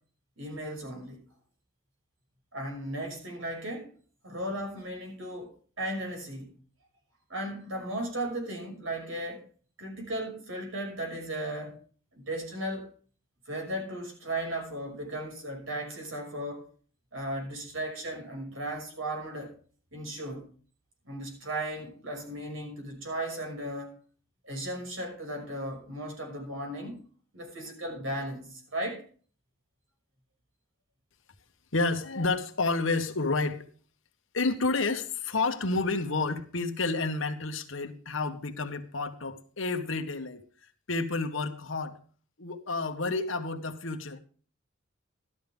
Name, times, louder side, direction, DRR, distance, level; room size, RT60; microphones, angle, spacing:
voice 1, 0.4-1.2 2.5-3.9 4.2-6.6 7.3-9.4 9.8-11.8 12.1-12.9 13.5-16.7 17.1-19.6 19.9-20.4 21.0-24.0 24.4-27.0 27.3-29.0, right 1 dB, 80° right, 6.0 m, -36 dB
voice 2, 31.7-33.7 34.3-42.0 42.4-44.2, left 3 dB, 75° left, 1.5 m, -30 dB
13.0 x 12.5 x 3.5 m
head